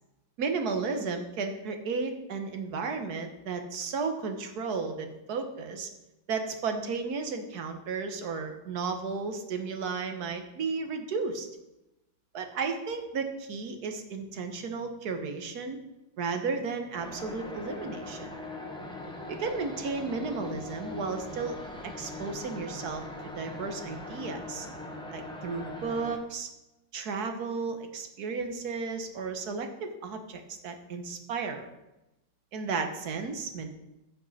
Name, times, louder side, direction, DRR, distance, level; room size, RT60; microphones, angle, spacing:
voice 1, 0.4-5.9 6.3-11.5 12.3-15.8 16.2-18.3 19.3-21.6 21.8-23.0 23.4-24.7 25.1-26.5 26.9-31.7 32.5-33.7, right 4 dB, 60° right, 6 dB, 1.5 m, -33 dB
sound 1, 16.9-26.2, left 2 dB, 5° left, 0.8 m, -40 dB
15.0 x 5.4 x 4.1 m, 0.96 s
omnidirectional pair, 1.9 m